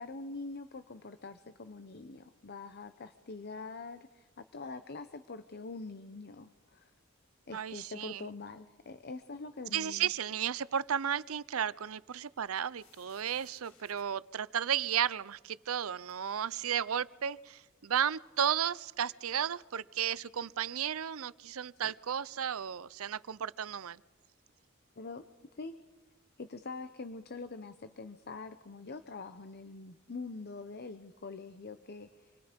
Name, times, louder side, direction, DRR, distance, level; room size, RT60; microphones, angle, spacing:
voice 1, 0.0-6.9 7.5-10.1 21.8-21.9 25.0-25.3 25.5-25.8 26.4-32.4, left 3 dB, 50° left, 10 dB, 0.8 m, -44 dB
voice 2, 7.5-8.2 9.7-24.0, right 9 dB, 85° right, 19 dB, 0.6 m, -34 dB
sound 1, 12.8-14.0 14.8-14.9 16.1-16.2, left 6 dB, 75° left, 4.3 m, -62 dB
27.0 x 21.5 x 5.2 m, 1.2 s
head